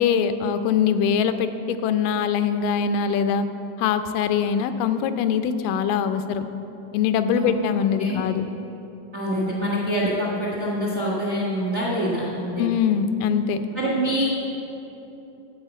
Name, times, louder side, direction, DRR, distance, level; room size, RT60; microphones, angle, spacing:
voice 1, 0.0-3.5 3.8-6.5 6.9-8.5 12.6-13.6, left 7 dB, 90° left, 9 dB, 2.2 m, -22 dB
voice 2, 9.1-12.6 13.7-14.3, equal, 45° right, -5 dB, 1.1 m, -25 dB
13.0 x 4.8 x 8.0 m, 3.0 s
omnidirectional pair, 3.8 m